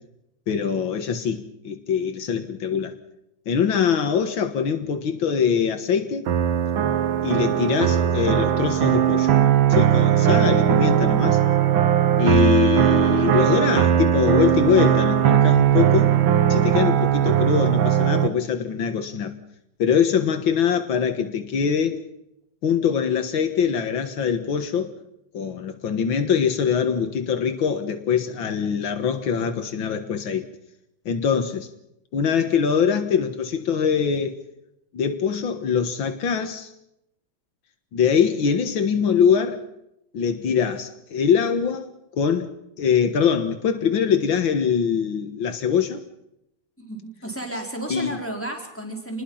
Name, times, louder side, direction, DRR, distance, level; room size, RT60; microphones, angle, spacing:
voice 1, 0.5-2.9 3.5-6.3 7.2-9.3 9.7-11.4 12.2-16.2 16.5-19.3 19.8-22.0 22.6-24.9 25.3-30.5 31.1-31.7 32.1-34.3 34.9-36.7 37.9-39.6 40.1-41.9 42.2-42.5 42.8-46.0 47.9-48.1, left 7 dB, 85° left, 2.3 m, -23 dB
sound 1, 6.3-18.3, right 10 dB, 90° right, 2.0 m, -19 dB
voice 2, 46.8-49.2, right 1 dB, 5° left, 4.7 m, -32 dB
28.5 x 21.0 x 5.7 m
omnidirectional pair, 2.1 m